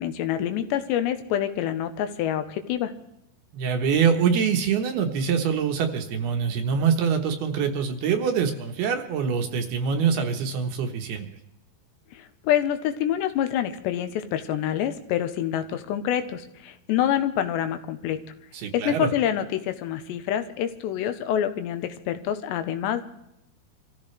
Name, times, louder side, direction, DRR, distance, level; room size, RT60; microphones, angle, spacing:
voice 1, 0.0-2.9 12.1-18.2 18.7-23.0, left 10 dB, 80° left, 9 dB, 3.0 m, -26 dB
voice 2, 3.5-11.3 18.5-19.1, right 6 dB, 70° right, 5 dB, 2.8 m, -24 dB
25.0 x 15.0 x 3.3 m, 0.83 s
omnidirectional pair, 5.1 m